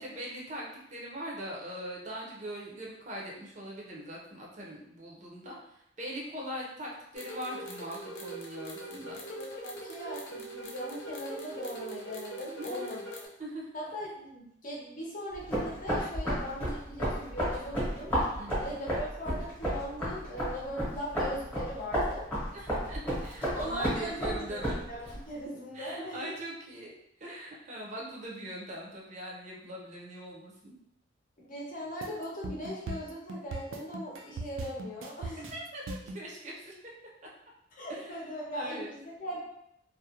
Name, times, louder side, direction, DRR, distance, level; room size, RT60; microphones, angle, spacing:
voice 1, 0.0-9.2 12.5-12.9 13.4-13.7 18.4-18.7 22.5-24.8 25.7-26.9 27.2-30.8 35.5-36.7 37.9-38.1 38.5-38.9, right 1 dB, 35° right, -3 dB, 0.6 m, -41 dB
sound 1, 7.1-13.3, right 1 dB, 80° left, 0.5 m, -42 dB
voice 2, 8.9-13.0 13.7-18.1 18.6-22.3 23.5-26.4 31.4-35.5 37.8-39.4, equal, 45° left, -4 dB, 0.7 m, -39 dB
sound 2, 15.3-25.2, equal, 10° left, 0.9 m, -32 dB
sound 3, 32.0-36.2, right 2 dB, 85° right, 0.3 m, -39 dB
2.4 x 2.0 x 2.8 m, 0.76 s
head